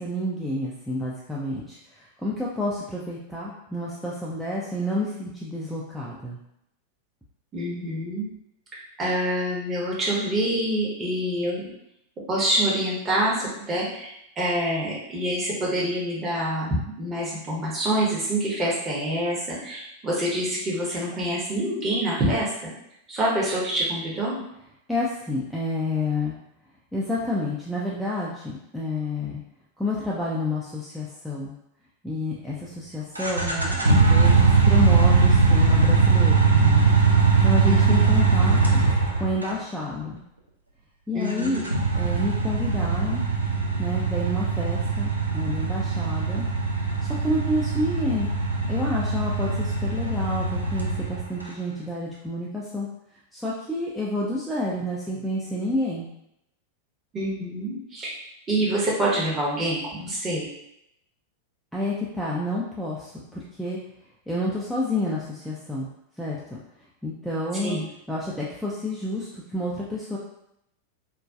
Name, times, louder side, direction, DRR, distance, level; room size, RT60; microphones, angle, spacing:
voice 1, 0.0-1.8 2.2-6.4 24.9-26.3 26.9-29.4 29.8-31.5 32.0-36.8 37.4-38.8 39.2-40.2 41.1-41.7 41.9-43.3 43.8-46.5 47.2-48.3 48.7-52.9 53.3-56.1 61.7-63.8 64.3-65.9 66.2-66.4 67.0-67.8 68.1-70.2, left 1 dB, ahead, -7 dB, 0.4 m, -29 dB
voice 2, 7.5-8.3 9.0-11.7 12.3-22.7 23.1-24.4 37.6-38.0 41.1-41.6 57.1-58.1 58.5-60.5 67.6-67.8, right 1 dB, 25° right, -5 dB, 0.8 m, -26 dB
sound 1, 33.2-39.5 41.3-51.4, right 4 dB, 85° right, 0.4 m, -20 dB
2.4 x 2.2 x 2.4 m, 0.80 s
figure-of-eight pair, 90°, 0 cm